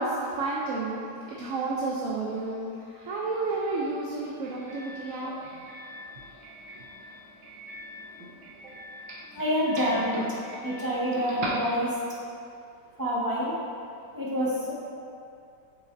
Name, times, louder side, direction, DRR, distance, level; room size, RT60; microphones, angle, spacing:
voice 1, 0.0-5.7 6.3-6.8 8.6-8.7, right 3 dB, 60° right, -4 dB, 0.9 m, -32 dB
Doorbell, 3.2-12.3, right 1 dB, 90° right, 1.6 m, -41 dB
voice 2, 9.3-10.2 10.6-11.9 13.0-13.5 14.1-14.7, equal, 10° right, -9 dB, 1.4 m, -27 dB
8.0 x 6.3 x 2.7 m, 2.5 s
omnidirectional pair, 1.9 m